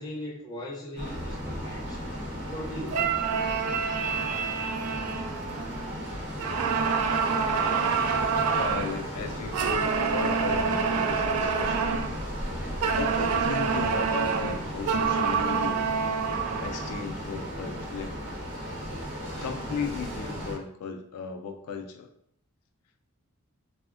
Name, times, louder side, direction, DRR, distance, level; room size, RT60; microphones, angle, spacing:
voice 1, 0.0-2.0 2.4-3.3, equal, 15° left, -4 dB, 0.5 m, -39 dB
sound 1, 1.0-20.6, equal, 50° right, 0.8 m, -36 dB
sound 2, 2.9-6.0 6.4-9.0 9.5-12.2 12.8-17.0, right 5 dB, 85° right, 0.3 m, -27 dB
voice 2, 8.1-12.0 12.7-15.9 16.6-18.2 19.4-22.1, left 5 dB, 80° left, 6 dB, 0.3 m, -36 dB
3.3 x 2.0 x 2.4 m, 0.70 s
head